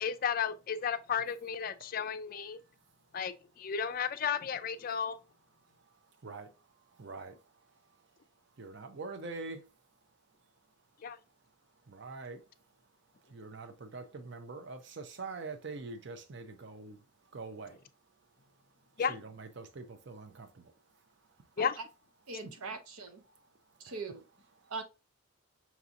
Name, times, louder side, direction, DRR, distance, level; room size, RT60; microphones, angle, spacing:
voice 1, 0.0-2.6 3.1-5.2 11.0-11.2 19.0-19.2 21.6-21.8, left 7 dB, 40° left, 0.3 m, -33 dB
voice 2, 5.8-8.1 8.6-9.7 11.8-12.5 13.2-17.8 19.1-20.7 23.8-23.9 24.6-24.7, right 3 dB, 55° right, 0.5 m, -45 dB
voice 3, 22.3-23.2 23.8-24.3 24.7-24.8, right 4 dB, 90° right, 0.8 m, -41 dB
5.8 x 2.7 x 2.4 m
head